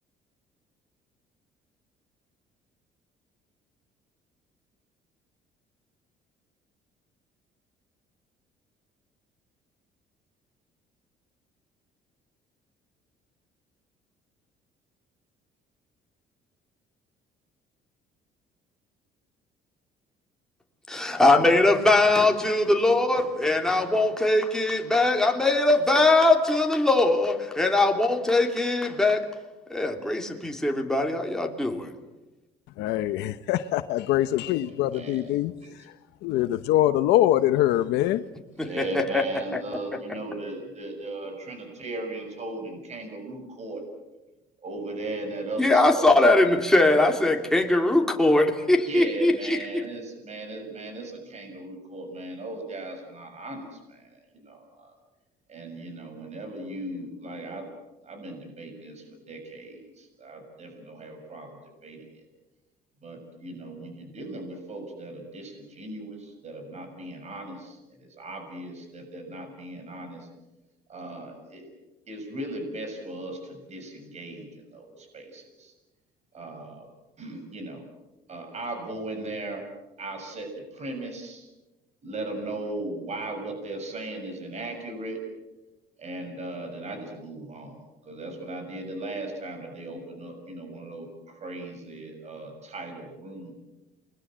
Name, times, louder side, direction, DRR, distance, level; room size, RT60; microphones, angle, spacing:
voice 1, 20.9-29.3 29.7-31.9 38.6-39.2 45.6-49.9, left 2 dB, 5° left, 2 dB, 3.2 m, -21 dB
voice 2, 32.8-35.5 36.2-38.2, left 13 dB, 90° left, 11 dB, 0.9 m, -23 dB
voice 3, 34.9-35.3 35.6-35.7 38.5-43.8 44.6-46.2 48.8-54.9 55.5-57.6 58.0-61.6 61.8-62.0 63.0-70.3 70.9-71.7 72.1-75.7 76.3-76.9 77.2-77.8 78.3-79.7 80.0-81.5 82.0-85.2 86.0-87.8 88.0-93.5, right 2 dB, 40° right, 5 dB, 6.8 m, -37 dB
29.5 x 21.5 x 7.5 m, 1.0 s
cardioid pair, 110°, 17 cm